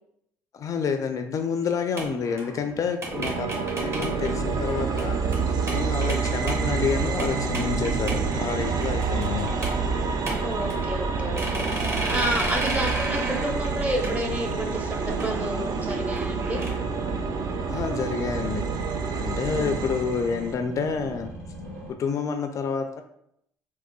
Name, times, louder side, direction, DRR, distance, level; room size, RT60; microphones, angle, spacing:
voice 1, 0.5-5.2 5.7-9.5 17.7-18.6 19.1-21.3 21.9-23.0, left 6 dB, 45° left, 7 dB, 0.3 m, -28 dB
sound 1, 2.0-5.0 5.3-5.4 5.7-8.4 8.6-10.0 10.3-11.1 11.4-16.7, right 2 dB, 35° right, 1.3 m, -33 dB
sound 2, 3.1-20.5, right 5 dB, 55° right, 0.5 m, -28 dB
sound 3, 6.7-21.9, right 1 dB, 85° right, 1.0 m, -41 dB
voice 2, 10.4-16.6 19.5-20.0, right 1 dB, 20° right, 2 dB, 0.9 m, -31 dB
3.7 x 3.0 x 2.3 m, 0.75 s
hypercardioid pair, 70°, 8 cm